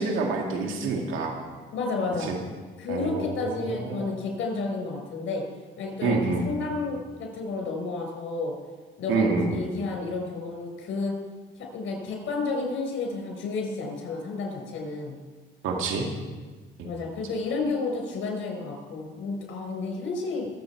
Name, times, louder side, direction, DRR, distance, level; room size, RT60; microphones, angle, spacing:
voice 1, 0.0-1.4 2.2-2.4 2.9-4.1 6.0-6.5 9.1-9.6 15.6-16.1 16.8-16.9, right 3 dB, 85° right, 1 dB, 2.1 m, -27 dB
voice 2, 1.7-2.3 2.8-5.4 5.8-6.2 6.4-8.5 9.0-11.1 11.7-15.2 16.8-20.5, left 3 dB, 80° left, 2 dB, 4.7 m, -31 dB
23.0 x 7.9 x 4.6 m, 1.4 s
cardioid pair, 90°, 20 cm